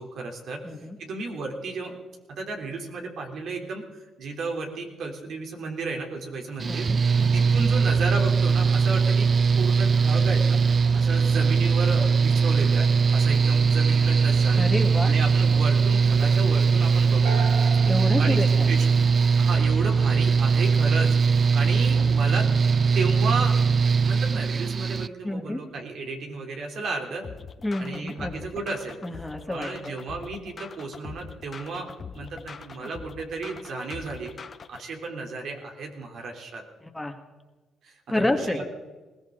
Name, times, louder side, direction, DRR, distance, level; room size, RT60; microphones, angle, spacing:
voice 1, 0.0-0.6 1.0-2.0 2.3-6.9 7.3-9.3 9.6-14.6 15.0-17.5 18.2-18.4 18.7-18.8 19.4-22.5 22.9-23.6 24.0-27.3 27.8-29.0 29.5-34.3 34.7-36.6 37.8-38.6, right 3 dB, 65° right, 2 dB, 3.4 m, -33 dB
voice 2, 0.6-1.0 6.7-7.5 14.6-15.1 17.9-18.8 21.6-21.7 22.0-22.1 25.2-25.7 27.6-28.5 29.0-30.0 32.8-32.9 36.8-37.2 38.1-38.6, left 1 dB, 10° left, 5 dB, 1.8 m, -29 dB
Mechanical fan, 6.6-25.1, right 5 dB, 40° right, 0.5 m, -21 dB
sound 1, 17.2-19.5, right 5 dB, 90° right, 3.6 m, -37 dB
sound 2, 27.2-34.8, left 5 dB, 40° left, 1.1 m, -42 dB
21.0 x 17.5 x 3.9 m, 1.2 s
cardioid pair, 90°, 0 cm